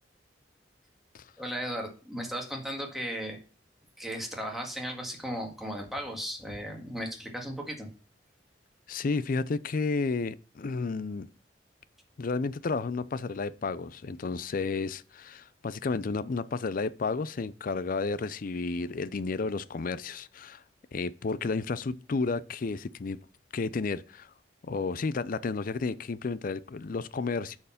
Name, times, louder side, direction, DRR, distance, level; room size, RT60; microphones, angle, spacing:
voice 1, 1.4-3.4 4.0-7.9, equal, ahead, 1.8 m, -36 dB
voice 2, 8.9-11.3 12.2-20.6 20.9-23.2 23.5-24.3 24.6-27.6, left 4 dB, 50° left, 0.5 m, -32 dB
8.4 x 4.6 x 5.7 m
head